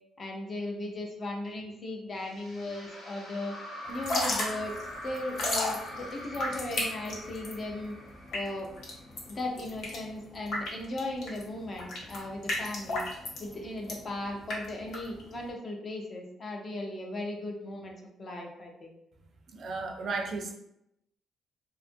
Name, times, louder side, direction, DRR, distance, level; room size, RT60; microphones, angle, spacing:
voice 1, 0.2-3.5 3.9-4.7 5.0-8.0 8.3-8.7 9.3-13.0 13.4-19.0, left 2 dB, 35° left, 1 dB, 0.5 m, -37 dB
sound 1, 2.2-9.5, equal, 85° left, 1.0 m, -44 dB
Drip / Trickle dribble, 3.9-15.5, left 2 dB, 65° left, 0.8 m, -35 dB
voice 2, 19.5-20.5, right 3 dB, 55° right, 3 dB, 0.4 m, -34 dB
2.7 x 2.4 x 2.6 m, 0.80 s
cardioid pair, 130°, 0 cm